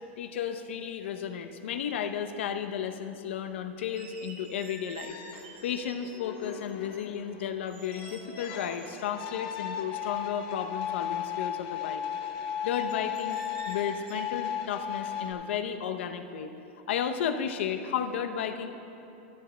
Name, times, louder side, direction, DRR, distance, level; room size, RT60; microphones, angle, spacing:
voice 1, 0.2-5.1 5.6-12.0 12.6-13.4 13.7-16.5 16.9-18.7, left 8 dB, 75° left, 8 dB, 0.7 m, -33 dB
sound 1, 1.2-1.3 1.5-2.4 3.8-7.1 7.7-9.1 9.6-9.7 10.0-11.1 12.7-14.3, right 4 dB, 75° right, 1.5 m, -50 dB
sound 2, 5.0-15.3, left 9 dB, 45° left, 0.8 m, -36 dB
14.0 x 14.0 x 2.2 m, 3.0 s
supercardioid pair, 170°, 6 cm